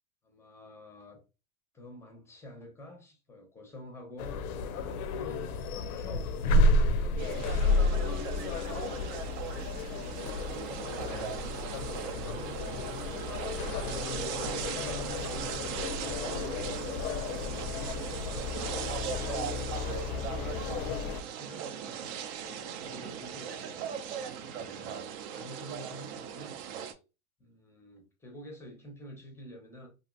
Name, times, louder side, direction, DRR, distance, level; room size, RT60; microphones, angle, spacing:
voice 1, 0.2-1.2 1.7-4.4 5.1-8.1 10.3-12.7 13.7-15.8 16.2-18.9 19.4-24.1 24.4-27.0 27.4-29.9, equal, 5° left, 0.6 m, -49 dB
sound 1, 4.2-21.2, left 2 dB, 85° left, 0.5 m, -31 dB
sound 2, 7.2-26.9, right 8 dB, 50° right, 0.5 m, -39 dB
2.8 x 2.6 x 2.4 m
supercardioid pair, 135°, 43 cm